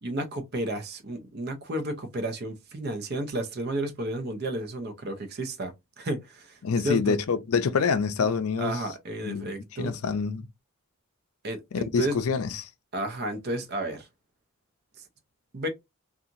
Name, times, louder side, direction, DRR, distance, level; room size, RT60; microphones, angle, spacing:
voice 1, 0.0-6.6 6.8-7.2 8.2-8.3 8.6-9.9 11.4-12.2 12.9-14.1 15.5-15.7, right 1 dB, 45° right, 0.6 m, -32 dB
voice 2, 6.6-8.7 9.2-9.5 9.8-10.5 11.7-12.7, left 5 dB, 75° left, 0.5 m, -26 dB
2.8 x 2.4 x 2.5 m
head